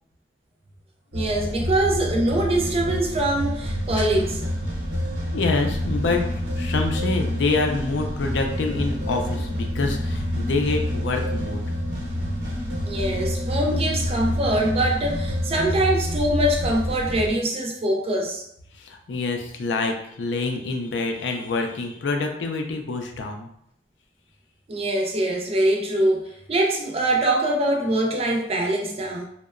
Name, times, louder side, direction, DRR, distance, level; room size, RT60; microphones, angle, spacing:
voice 1, 1.1-4.4 12.8-18.4 24.7-29.3, right 1 dB, 35° right, 0 dB, 0.5 m, -23 dB
sound 1, 1.1-17.3, left 1 dB, 85° right, 0.8 m, -28 dB
voice 2, 5.3-6.2 6.6-11.6 18.8-23.5, left 3 dB, 80° left, 3 dB, 0.4 m, -26 dB
sound 2, 5.7-16.9, left 2 dB, 20° left, 0.9 m, -40 dB
2.8 x 2.1 x 2.4 m, 0.71 s
head